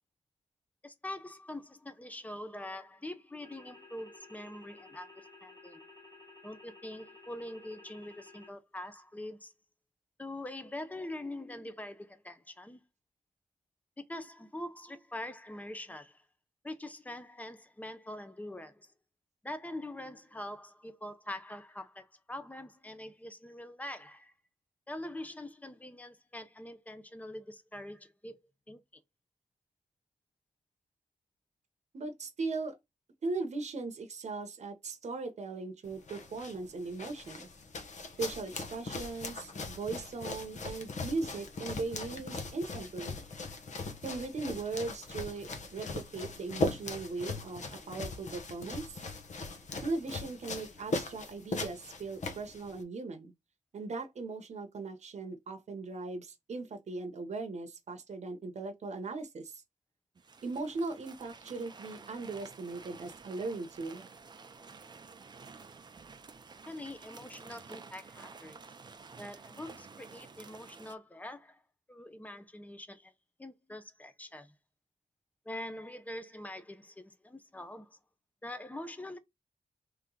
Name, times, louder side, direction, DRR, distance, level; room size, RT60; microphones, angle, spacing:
voice 1, 0.8-5.8 6.4-9.5 10.2-12.8 14.0-16.2 16.6-18.9 19.4-24.3 24.9-28.4 28.7-28.8 66.7-68.6 69.2-71.6 71.9-73.1 73.4-74.5 75.5-78.0 78.4-79.2, left 1 dB, 10° left, 0.6 m, -44 dB
sound 1, 3.4-8.5, left 3 dB, 30° left, 1.4 m, -54 dB
voice 2, 31.9-32.8 33.2-37.5 38.2-43.2 44.0-49.0 49.8-53.3 53.7-59.6 60.4-64.1, right 3 dB, 60° right, 0.9 m, -38 dB
sound 2, 35.8-52.8, left 3 dB, 60° left, 0.9 m, -40 dB
sound 3, 60.1-70.9, right 4 dB, 35° right, 0.5 m, -51 dB
3.3 x 3.0 x 3.7 m
wide cardioid pair, 140°, 13 cm